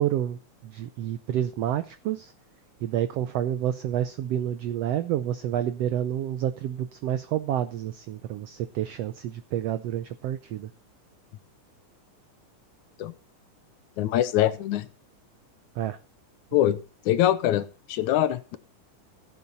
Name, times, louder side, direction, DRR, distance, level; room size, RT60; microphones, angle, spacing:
voice 1, 0.0-2.3 2.8-10.7 15.7-16.0, right 11 dB, 85° right, 11 dB, 1.4 m, -29 dB
voice 2, 14.0-14.9 16.5-16.8 17.1-18.6, left 12 dB, 75° left, 14 dB, 2.1 m, -23 dB
15.5 x 8.7 x 4.0 m, 0.34 s
omnidirectional pair, 3.7 m